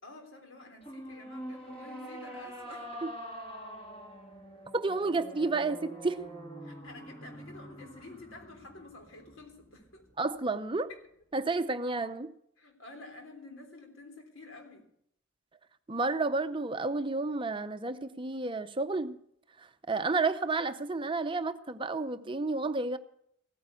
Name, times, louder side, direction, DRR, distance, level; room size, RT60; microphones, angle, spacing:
voice 1, 0.0-3.1 6.6-10.1 10.9-11.0 12.6-14.9, left 2 dB, 90° left, 3.4 m, -50 dB
sound 1, 0.8-10.2, right 1 dB, 30° left, 2.4 m, -45 dB
voice 2, 4.7-6.2 10.2-10.9 11.3-12.3 15.9-19.2 19.9-23.0, right 3 dB, 25° right, 0.6 m, -31 dB
15.5 x 9.4 x 6.8 m
head